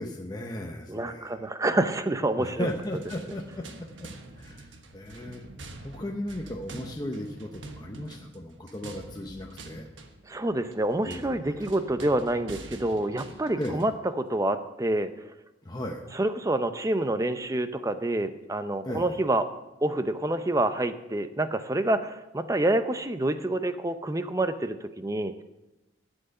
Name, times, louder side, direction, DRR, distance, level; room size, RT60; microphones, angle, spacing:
voice 1, 0.0-1.4 2.4-4.1 4.4-5.4 5.8-9.9 11.1-11.6 13.6-13.9 15.6-16.0 18.8-19.1, left 1 dB, 20° left, 1 dB, 0.8 m, -36 dB
voice 2, 0.9-2.7 10.3-13.9 14.2-15.1 16.1-19.5 19.8-25.4, right 1 dB, 15° right, 10 dB, 0.6 m, -27 dB
sound 1, 2.6-14.0, right 2 dB, 80° right, 1.3 m, -46 dB
12.0 x 8.0 x 6.5 m, 1.0 s
head